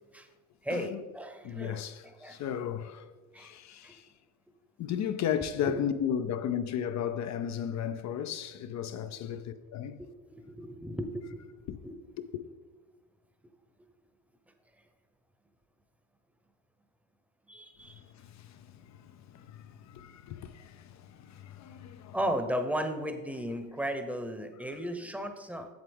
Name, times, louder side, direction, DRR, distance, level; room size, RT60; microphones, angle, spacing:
voice 1, 0.6-2.4 3.3-3.5 3.8-3.9 5.6-5.8 10.3-11.4 11.8-11.9 17.5-18.0 22.1-25.7, equal, 5° right, 0.9 m, -35 dB
voice 2, 1.4-3.1 3.4-4.1 4.8-10.0 11.7-11.8 12.3-12.4 18.2-22.2, left 9 dB, 45° left, 0.5 m, -35 dB
7.8 x 7.5 x 3.5 m
hypercardioid pair, 65°, 41 cm